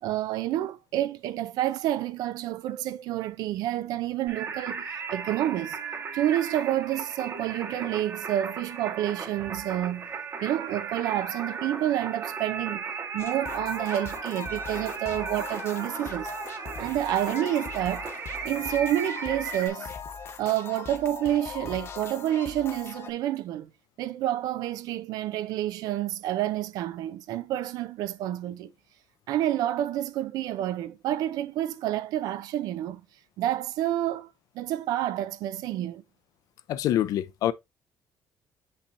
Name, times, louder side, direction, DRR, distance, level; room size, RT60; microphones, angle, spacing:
voice 1, 0.0-5.8 6.1-10.1 10.4-12.8 13.1-16.3 16.8-18.1 18.4-19.9 20.4-23.7 24.0-28.7 29.3-33.0 33.4-34.3 34.5-36.0, right 13 dB, 80° right, 0.6 m, -29 dB
Singing, 4.3-19.7, right 5 dB, 40° right, 1.3 m, -36 dB
sound 1, 13.2-23.1, left 7 dB, 40° left, 1.0 m, -40 dB
voice 2, 36.7-37.5, left 12 dB, 70° left, 0.5 m, -25 dB
6.8 x 5.5 x 2.6 m
cardioid pair, 140°, 6 cm